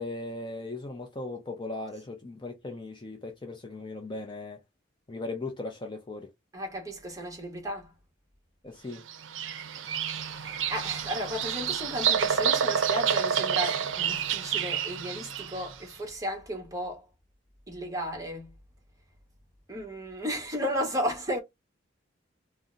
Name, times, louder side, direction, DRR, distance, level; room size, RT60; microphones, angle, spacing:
voice 1, 0.0-4.6 5.1-6.3 8.6-9.0, left 2 dB, 25° left, 0.5 m, -38 dB
voice 2, 6.5-7.9 10.0-17.1 17.7-18.5 19.7-21.4, equal, 15° right, 1.0 m, -34 dB
Bird vocalization bird call bird song, 9.1-15.7, right 8 dB, 75° right, 0.5 m, -29 dB
2.7 x 2.0 x 3.7 m
head